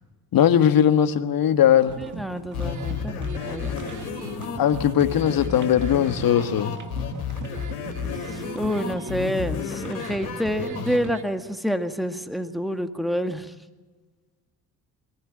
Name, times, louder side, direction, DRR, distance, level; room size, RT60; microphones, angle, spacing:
voice 1, 0.3-2.0 4.6-6.8, left 9 dB, 50° left, 11 dB, 1.6 m, -19 dB
sound 1, 1.8-11.2, right 6 dB, 40° right, 2.0 m, -39 dB
voice 2, 2.2-4.0 8.3-13.5, equal, ahead, 8 dB, 2.0 m, -28 dB
sound 2, 2.5-11.0, left 7 dB, 80° left, 3.0 m, -32 dB
23.0 x 15.0 x 8.8 m, 1.3 s
hypercardioid pair, 50°, 44 cm